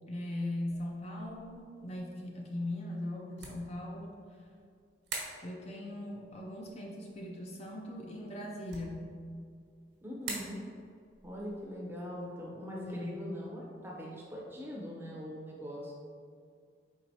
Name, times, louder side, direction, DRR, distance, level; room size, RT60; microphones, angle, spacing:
voice 1, 0.1-4.2 5.4-9.1 12.9-13.3, left 1 dB, 35° left, -1 dB, 0.4 m, -39 dB
sound 1, 0.7-14.8, right 3 dB, 75° right, 1.1 m, -50 dB
voice 2, 10.0-10.6 11.2-15.9, equal, 10° right, -3 dB, 0.6 m, -41 dB
4.5 x 3.9 x 2.7 m, 2.2 s
head